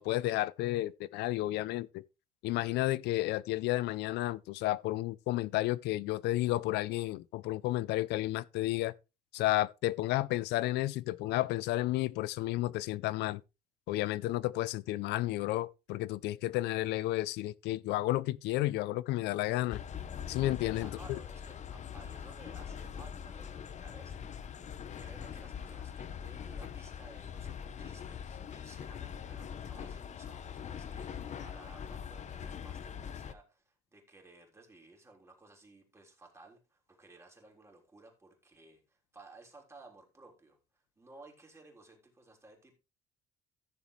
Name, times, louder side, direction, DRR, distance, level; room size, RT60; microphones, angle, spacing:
voice 1, 0.0-2.0 2.4-8.9 9.3-13.4 13.9-19.8 20.3-21.2, left 16 dB, 85° left, 0.5 m, -32 dB
sound 1, 19.7-33.3, left 8 dB, 45° left, 0.9 m, -43 dB
voice 2, 20.8-42.8, right 2 dB, 15° right, 3.6 m, -57 dB
14.0 x 7.1 x 3.2 m
cardioid pair, 110°, 17 cm